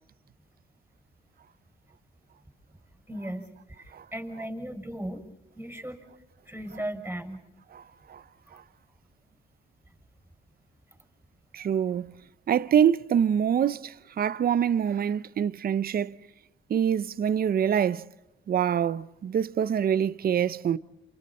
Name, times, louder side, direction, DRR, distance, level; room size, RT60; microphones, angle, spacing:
voice 1, 3.1-5.2 5.6-6.0 6.5-7.4, right 1 dB, 10° right, 6.4 m, -36 dB
voice 2, 11.5-12.1 12.5-16.2 16.7-18.1 18.5-20.8, right 8 dB, 50° right, 0.8 m, -25 dB
29.5 x 28.5 x 4.3 m
cardioid pair, 90°, 20 cm